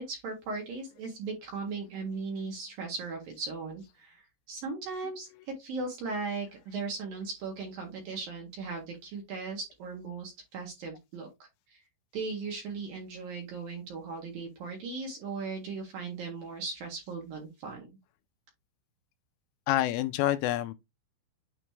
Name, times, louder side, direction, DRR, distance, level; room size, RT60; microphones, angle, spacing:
voice 1, 0.0-11.3 11.7-11.8 12.1-17.9, right 4 dB, 60° right, 2.7 m, -38 dB
voice 2, 19.7-20.7, left 14 dB, 85° left, 3.0 m, -27 dB
9.4 x 3.2 x 3.2 m
omnidirectional pair, 5.8 m